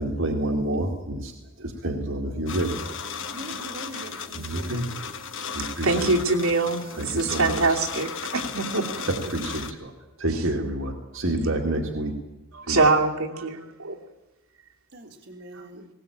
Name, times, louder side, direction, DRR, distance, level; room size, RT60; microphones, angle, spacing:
voice 1, 0.0-1.3 1.6-2.8 4.4-4.9 5.5-6.1 7.0-7.8 9.1-9.9 10.2-12.2 12.6-12.8, right 1 dB, 65° right, 2.2 m, -28 dB
sound 1, 2.5-9.7, left 6 dB, 60° left, 1.6 m, -36 dB
voice 2, 3.3-5.0 14.9-15.9, right 1 dB, 50° right, 1.9 m, -42 dB
voice 3, 5.8-9.1 12.7-14.0 15.5-15.8, right 3 dB, 80° right, 2.7 m, -24 dB
19.0 x 18.5 x 8.7 m
head